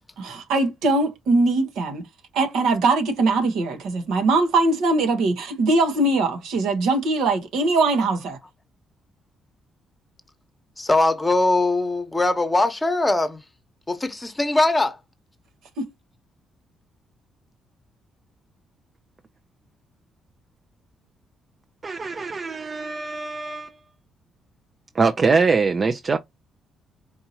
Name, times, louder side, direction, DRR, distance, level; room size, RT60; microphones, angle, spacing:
voice 1, 0.2-2.0 2.3-8.4 15.8-15.9, right 3 dB, 80° right, 1.1 m, -21 dB
voice 2, 10.8-13.4 13.9-15.0, left 2 dB, 15° left, 1.0 m, -21 dB
voice 3, 21.8-23.7 25.0-26.2, right 4 dB, 35° right, 0.5 m, -22 dB
4.6 x 2.8 x 2.8 m
cardioid pair, 90°, 0 cm